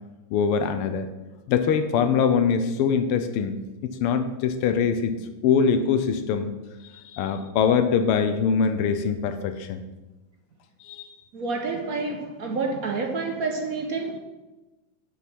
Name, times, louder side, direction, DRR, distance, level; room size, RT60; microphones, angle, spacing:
voice 1, 0.3-1.1 1.5-3.5 3.8-5.1 5.4-6.5 6.8-9.8 10.8-11.1, left 6 dB, 85° left, 8 dB, 1.6 m, -23 dB
voice 2, 11.3-14.2, right 3 dB, 55° right, 3 dB, 1.1 m, -28 dB
8.5 x 5.7 x 6.0 m, 1.1 s
omnidirectional pair, 2.4 m